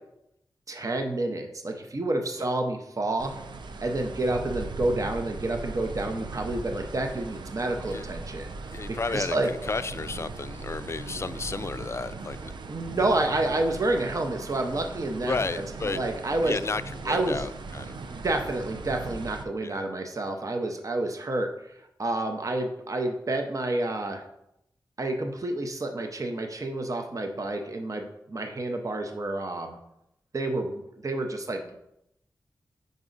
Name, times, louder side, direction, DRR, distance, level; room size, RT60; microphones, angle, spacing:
voice 1, 0.7-3.3 3.8-8.5 9.1-9.5 12.7-15.4 15.8-16.5 17.0-17.4 18.1-24.2 25.0-29.8 30.3-31.7, right 2 dB, 45° right, 4 dB, 0.7 m, -29 dB
sound 1, 3.2-19.5, right 3 dB, 75° right, 0.5 m, -39 dB
voice 2, 8.7-12.5 13.0-13.1 14.0-14.1 15.2-16.0 16.4-18.0 19.6-19.8, left 4 dB, 35° left, 12 dB, 0.4 m, -32 dB
5.3 x 4.8 x 3.9 m, 0.80 s
cardioid pair, 50°, 8 cm